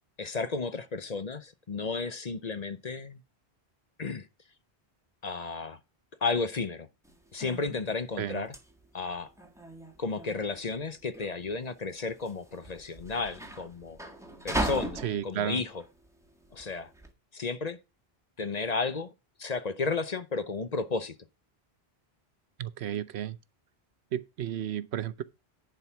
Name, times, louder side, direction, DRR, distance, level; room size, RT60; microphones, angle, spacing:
voice 1, 0.2-3.2 4.0-4.3 5.2-5.8 6.2-6.9 7.3-8.5 8.9-9.3 10.0-14.0 14.4-15.8 16.5-16.9 17.3-17.8 18.4-19.1 19.4-21.1, left 4 dB, 45° left, 0.9 m, -33 dB
sound 1, 7.0-17.1, right 1 dB, 5° right, 1.7 m, -38 dB
voice 2, 15.0-15.6 22.6-23.4 24.1-25.2, right 10 dB, 85° right, 1.0 m, -33 dB
10.5 x 4.6 x 5.8 m
omnidirectional pair, 1.1 m